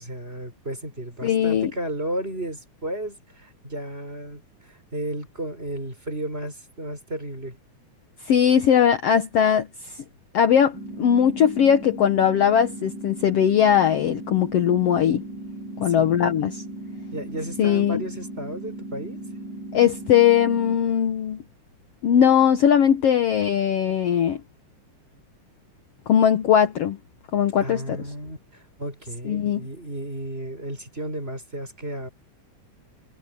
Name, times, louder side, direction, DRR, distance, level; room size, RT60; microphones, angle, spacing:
voice 1, 0.0-7.6 15.8-16.2 17.1-19.2 27.6-32.1, right 1 dB, 20° right, 6.1 m, -33 dB
voice 2, 1.2-1.7 8.3-9.7 10.3-15.3 15.8-16.6 17.6-18.0 19.7-21.4 22.0-24.4 26.1-27.0 27.3-28.0 29.3-29.6, left 9 dB, 60° left, 1.9 m, -19 dB
sound 1, 10.7-20.7, right 1 dB, 45° right, 3.3 m, -37 dB
omnidirectional pair, 3.5 m